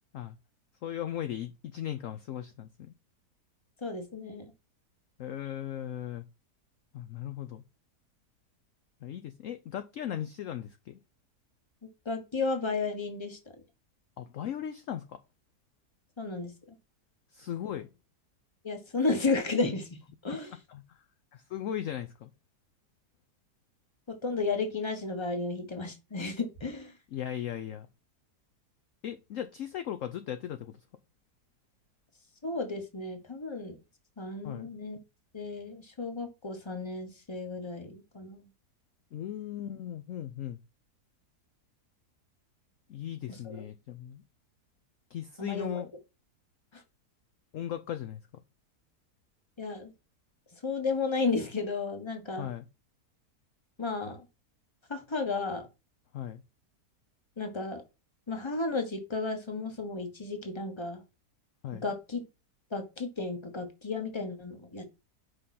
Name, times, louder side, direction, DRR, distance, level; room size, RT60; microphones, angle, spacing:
voice 1, 0.8-2.9 5.2-6.2 6.9-7.6 9.0-11.0 14.2-15.2 17.3-17.9 20.3-20.4 20.7-21.0 21.3-22.3 27.1-27.9 29.0-30.8 34.4-34.7 39.1-40.6 42.9-44.2 45.1-45.9 47.5-48.4 52.4-52.7 56.1-56.4 61.6-61.8, left 10 dB, 65° left, 0.9 m, -37 dB
voice 2, 3.8-4.4 12.0-13.4 16.2-16.5 18.6-19.9 20.2-20.5 24.2-26.9 32.4-33.8 34.2-35.0 35.3-38.5 43.4-43.6 45.4-45.8 49.6-49.9 50.6-52.5 53.8-54.2 54.9-55.7 57.4-57.8 58.3-61.0 61.8-62.2 62.7-64.9, left 3 dB, 20° left, 1.3 m, -33 dB
5.6 x 5.4 x 4.2 m
omnidirectional pair, 1.7 m